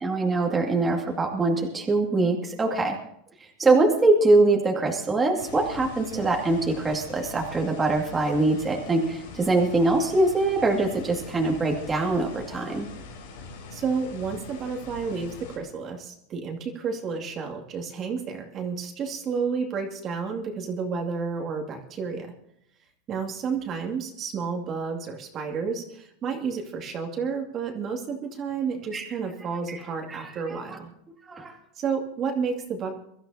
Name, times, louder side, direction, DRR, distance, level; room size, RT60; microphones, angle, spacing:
voice 1, 0.0-3.0 3.4-12.9 28.9-29.0 29.7-29.8 30.1-30.6 31.2-31.5, right 2 dB, 15° right, 0 dB, 2.2 m, -23 dB
sound 1, 5.4-15.6, left 4 dB, 90° left, 5.3 m, -43 dB
voice 2, 13.7-22.3 23.1-30.9 31.8-32.9, right 5 dB, 35° right, 2 dB, 2.3 m, -31 dB
23.5 x 13.0 x 2.8 m, 0.72 s
supercardioid pair, 135°, 0 cm